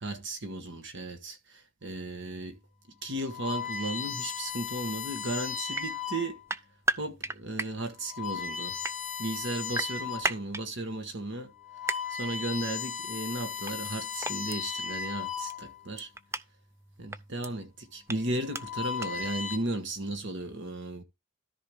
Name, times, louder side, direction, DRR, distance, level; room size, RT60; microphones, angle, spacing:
voice 1, 0.0-2.6 3.0-6.4 7.0-8.8 9.2-11.5 11.8-16.1 17.0-21.0, right 2 dB, 60° right, 1.3 m, -35 dB
sound 1, 2.2-2.5 3.1-6.5 7.2-7.4 7.9-10.4 10.9-11.0 11.5-15.9 17.0-17.3 18.2-19.6, left 7 dB, 40° left, 2.4 m, -36 dB
sound 2, 5.7-5.9 6.5-7.7 8.6-9.0 9.7-10.6 11.9-12.0 13.7-13.9 14.2-14.6 15.5-15.6 16.0-16.4 17.1-17.5 18.1-18.2 18.5-18.6 19.0-19.1, right 2 dB, 15° right, 0.4 m, -32 dB
13.0 x 4.8 x 3.5 m
head